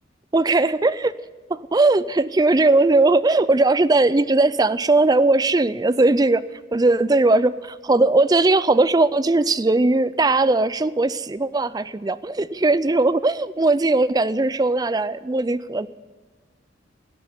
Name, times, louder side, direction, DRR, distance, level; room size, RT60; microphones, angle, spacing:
voice 1, 0.3-1.2 1.5-6.4 6.7-15.9, right 2 dB, 20° right, 16 dB, 0.4 m, -19 dB
18.0 x 7.8 x 9.7 m, 1.4 s
head